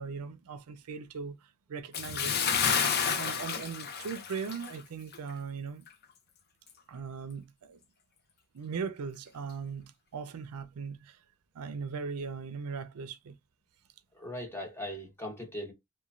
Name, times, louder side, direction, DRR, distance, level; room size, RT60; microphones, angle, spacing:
voice 1, 0.0-2.3 2.8-5.8 6.9-7.8 8.5-11.2 11.5-13.4, right 5 dB, 80° right, 0.4 m, -39 dB
Bathtub (filling or washing) / Splash splatter, 1.9-4.8 5.1-5.3 5.9-6.0, left 7 dB, 45° left, 0.4 m, -30 dB
voice 2, 14.1-15.7, left 1 dB, 10° left, 0.8 m, -39 dB
2.9 x 2.2 x 2.4 m
head